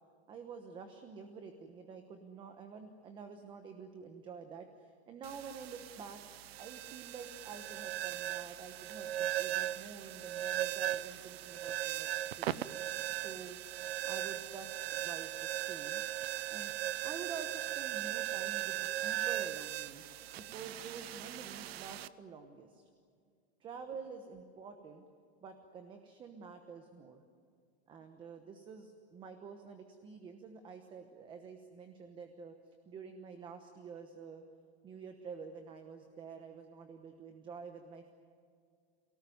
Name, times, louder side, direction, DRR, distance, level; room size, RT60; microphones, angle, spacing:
voice 1, 0.3-6.2 6.6-12.1 12.4-12.6 13.2-13.6 14.0-16.0 16.5-16.7 17.0-20.0 20.4-22.9 23.6-25.0 25.4-27.2 27.9-34.4 34.8-38.1, right 5 dB, 15° right, 7 dB, 1.1 m, -48 dB
sound 1, 5.2-22.1, right 13 dB, 75° right, 0.9 m, -38 dB
29.5 x 18.5 x 9.4 m, 2.2 s
supercardioid pair, 170°, 31 cm